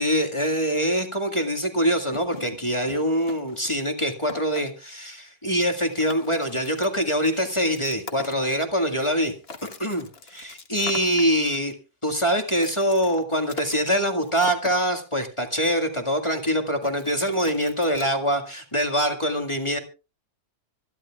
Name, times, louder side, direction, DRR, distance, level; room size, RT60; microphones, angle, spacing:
voice 1, 0.0-9.3 9.6-11.7 12.0-19.8, equal, 20° left, 4 dB, 1.8 m, -24 dB
sound 1, 2.1-4.6 5.5-5.6 5.9-8.8 9.2-11.3 12.5-14.8 16.8-18.1, left 4 dB, 40° left, 1.6 m, -42 dB
26.0 x 11.0 x 2.4 m, 0.32 s
omnidirectional pair, 1.7 m